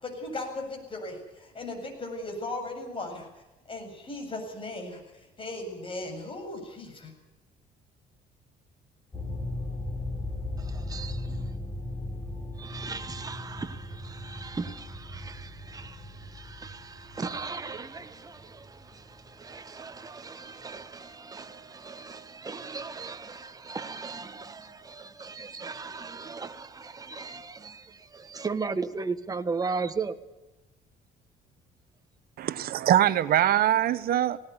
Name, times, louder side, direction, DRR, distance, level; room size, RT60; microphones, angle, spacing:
voice 1, 0.0-3.3 3.7-7.1, left 2 dB, 30° left, 7.9 m, -37 dB
sound 1, 9.1-20.1, left 2 dB, 15° left, 5.9 m, -38 dB
voice 2, 10.6-11.5 12.6-30.2, right 4 dB, 20° right, 1.4 m, -37 dB
voice 3, 32.4-34.4, right 12 dB, 65° right, 1.1 m, -23 dB
19.0 x 18.5 x 9.7 m
cardioid pair, 110°, 17 cm